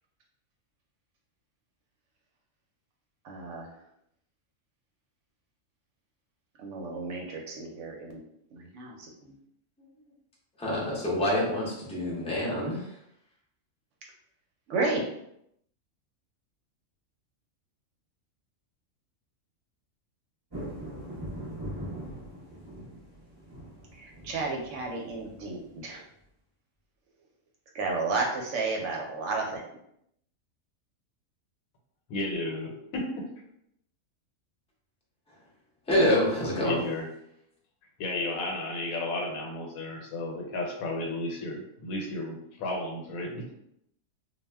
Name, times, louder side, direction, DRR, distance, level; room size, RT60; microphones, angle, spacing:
voice 1, 3.2-3.7 6.6-8.2 8.5-9.3 14.7-15.0 24.0-26.0 27.7-29.6, right 3 dB, 70° right, 0 dB, 0.8 m, -32 dB
voice 2, 10.6-12.9 35.9-36.8, left 1 dB, 10° left, -5 dB, 0.3 m, -26 dB
sound 1, 20.5-25.9, equal, 25° right, 0.7 m, -41 dB
voice 3, 32.1-33.3 36.5-37.1 38.0-43.5, left 2 dB, 80° left, 1 dB, 1.1 m, -33 dB
2.3 x 2.1 x 3.3 m, 0.76 s
omnidirectional pair, 1.5 m